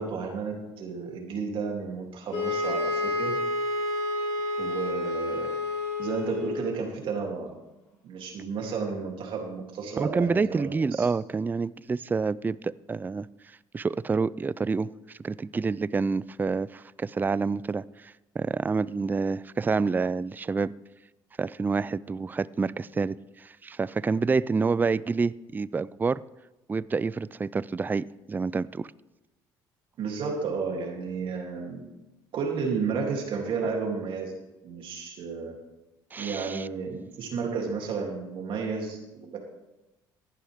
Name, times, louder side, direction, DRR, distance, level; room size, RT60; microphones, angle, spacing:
voice 1, 0.0-3.4 4.6-5.5 6.0-7.5 8.0-11.1 30.0-31.8 32.3-34.4 34.6-35.5 36.2-39.4, right 5 dB, 60° right, 1 dB, 3.0 m, -32 dB
sound 1, 2.3-6.7, left 2 dB, 60° left, 5.1 m, -29 dB
voice 2, 10.0-13.3 13.7-20.7 21.4-26.2 26.7-28.9 36.1-36.7, right 4 dB, 20° right, 19 dB, 0.4 m, -28 dB
15.0 x 11.5 x 3.6 m, 1.0 s
supercardioid pair, 75°, 10 cm